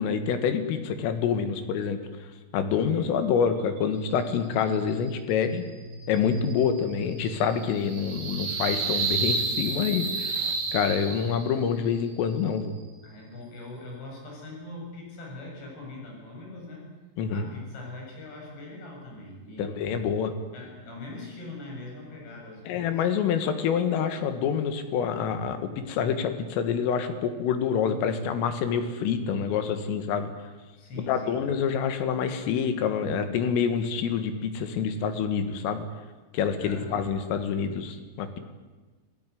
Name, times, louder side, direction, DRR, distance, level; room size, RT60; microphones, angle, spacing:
voice 1, 0.0-2.0 2.5-5.7 6.1-12.8 17.2-17.5 19.6-20.3 22.7-30.3 31.0-35.8 36.3-38.4, left 7 dB, 80° left, 8 dB, 4.4 m, -27 dB
voice 2, 2.7-3.0 13.0-16.9 17.3-20.1 20.5-23.0 30.8-31.4 36.6-37.1, left 2 dB, 55° left, -1 dB, 9.1 m, -42 dB
sound 1, 5.6-11.6, right 4 dB, 55° right, 5.6 m, -31 dB
27.5 x 16.5 x 9.5 m, 1.3 s
omnidirectional pair, 5.9 m